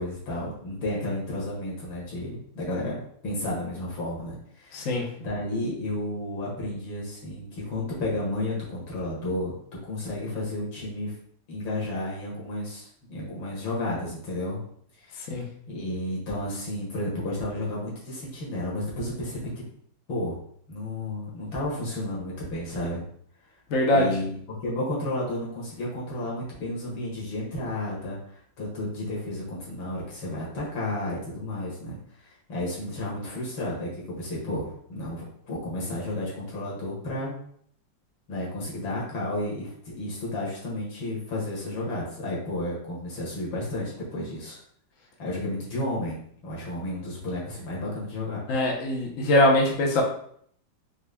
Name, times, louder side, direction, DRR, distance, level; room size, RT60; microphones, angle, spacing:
voice 1, 0.0-9.5 9.8-11.1 11.5-14.6 15.1-15.3 15.7-19.4 20.1-20.4 20.7-23.0 23.9-32.0 32.5-37.3 38.3-44.6 45.2-48.4, left 1 dB, 85° left, -5 dB, 2.3 m, -32 dB
voice 2, 4.7-5.1 15.3-15.4 23.7-24.2 48.5-50.0, left 1 dB, 55° left, -1 dB, 1.0 m, -22 dB
5.1 x 3.8 x 2.2 m, 0.64 s
omnidirectional pair, 2.1 m